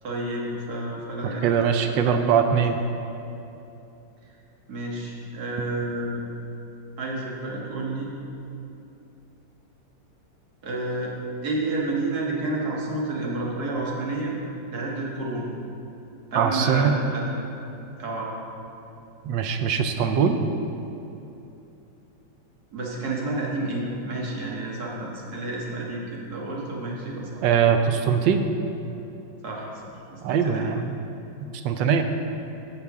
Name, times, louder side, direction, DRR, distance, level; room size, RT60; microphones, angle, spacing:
voice 1, 0.0-2.1 4.7-6.2 7.0-8.1 10.6-11.1 11.4-14.3 14.7-15.5 16.3-17.3 18.0-18.3 22.7-27.4 29.4-30.7, right 2 dB, 55° right, -3 dB, 1.9 m, -30 dB
voice 2, 1.4-2.8 16.3-16.9 19.2-20.4 27.4-28.5 30.2-31.0 31.5-32.0, right 7 dB, 75° right, 6 dB, 1.3 m, -21 dB
16.0 x 5.8 x 3.6 m, 2.8 s
omnidirectional pair, 2.1 m